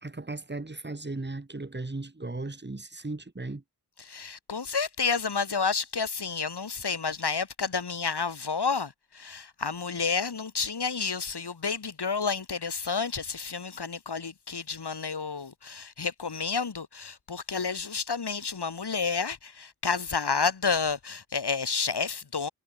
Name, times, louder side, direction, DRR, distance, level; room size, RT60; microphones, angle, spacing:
voice 1, 0.0-3.6, right 2 dB, 25° right, 2.8 m, -36 dB
voice 2, 4.0-22.5, left 5 dB, 80° left, 4.2 m, -30 dB
wide cardioid pair, 80°, 40 cm